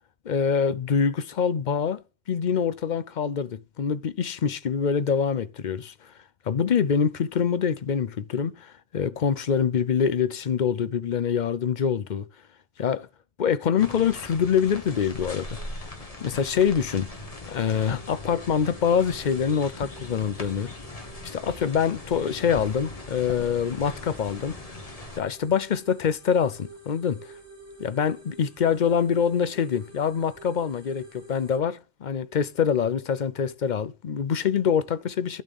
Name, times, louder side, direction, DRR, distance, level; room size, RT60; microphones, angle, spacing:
voice 1, 0.3-2.0 2.3-6.1 6.5-12.2 12.8-13.1 13.4-15.6 16.2-17.1 17.5-20.7 21.2-24.6 25.2-27.3 27.8-35.4, left 7 dB, 50° left, 0.7 m, -25 dB
sound 1, 13.8-25.2, left 2 dB, 35° left, 1.7 m, -40 dB
sound 2, 16.2-31.6, right 3 dB, 15° right, 4.7 m, -50 dB
12.0 x 4.4 x 5.3 m
omnidirectional pair, 1.1 m